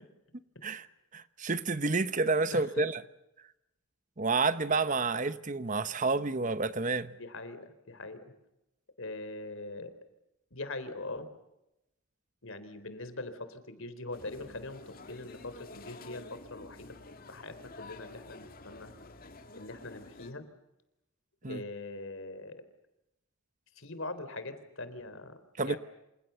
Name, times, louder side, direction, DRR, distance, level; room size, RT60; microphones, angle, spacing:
voice 1, 1.1-3.0 4.2-7.1 21.4-21.6 25.6-25.8, right 3 dB, 35° right, 1.0 m, -29 dB
voice 2, 2.5-2.8 7.2-8.3 9.0-9.9 10.5-11.3 12.4-17.0 17.3-18.9 19.6-20.4 21.5-22.6 23.8-25.8, left 2 dB, 65° left, 3.9 m, -42 dB
sound 1, 14.1-20.3, left 2 dB, 40° left, 2.4 m, -50 dB
28.0 x 28.0 x 7.0 m
head